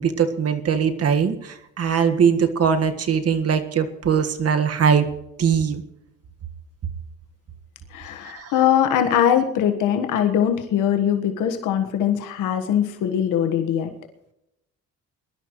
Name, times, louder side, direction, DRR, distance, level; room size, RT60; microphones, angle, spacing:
voice 1, 0.0-5.1 5.4-5.8 8.2-8.5, right 7 dB, 50° right, 8 dB, 1.7 m, -21 dB
voice 2, 7.9-13.9, left 9 dB, 90° left, 5 dB, 1.5 m, -21 dB
21.5 x 12.0 x 3.1 m, 0.85 s
cardioid pair, 90°, 30 cm